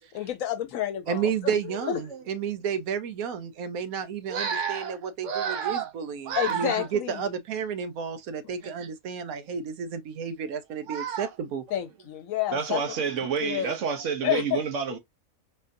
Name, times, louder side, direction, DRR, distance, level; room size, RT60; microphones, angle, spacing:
voice 1, 0.1-1.5 1.8-2.0 6.4-7.2 11.7-12.8 13.4-13.7 14.2-14.6, left 11 dB, 75° left, 1.0 m, -29 dB
voice 2, 1.1-11.6, right 7 dB, 85° right, 1.2 m, -32 dB
voice 3, 1.8-2.2 4.3-5.0 5.2-5.9 6.2-6.9 8.6-8.7 10.9-11.3 12.5-15.0, right 6 dB, 65° right, 1.0 m, -30 dB
4.2 x 2.5 x 2.5 m
omnidirectional pair, 1.5 m